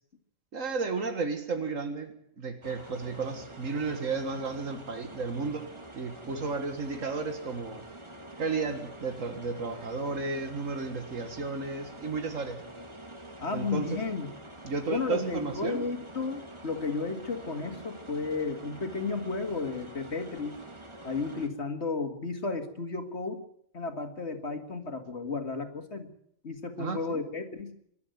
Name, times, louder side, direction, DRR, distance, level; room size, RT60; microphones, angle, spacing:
voice 1, 0.5-5.7 5.9-7.8 8.4-12.6 13.5-14.0 14.6-15.8 26.8-27.2, right 4 dB, 85° right, 7 dB, 2.1 m, -33 dB
sound 1, 2.6-21.5, right 1 dB, 25° right, 2.0 m, -46 dB
voice 2, 13.4-14.3 14.9-20.6 21.0-23.4 23.7-26.1 26.4-27.7, left 4 dB, 60° left, 6 dB, 2.4 m, -33 dB
25.0 x 12.0 x 9.2 m, 0.70 s
omnidirectional pair, 1.3 m